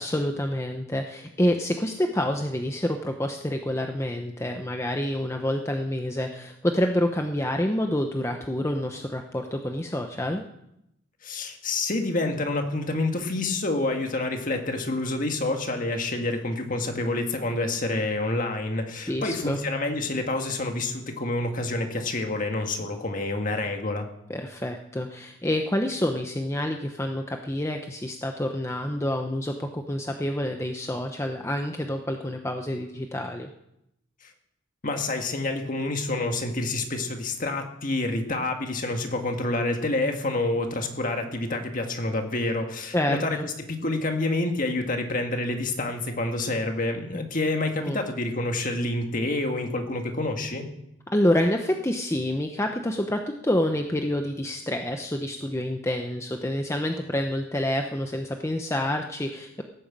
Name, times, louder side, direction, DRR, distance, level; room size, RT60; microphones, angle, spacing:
voice 1, 0.0-10.5 19.1-19.6 24.3-33.5 42.9-43.5 47.8-48.0 51.1-59.6, left 1 dB, 15° left, 4 dB, 0.8 m, -27 dB
voice 2, 11.2-24.1 34.2-34.3 34.8-50.7, left 2 dB, 40° left, 4 dB, 1.8 m, -28 dB
16.5 x 9.2 x 7.4 m, 0.83 s
head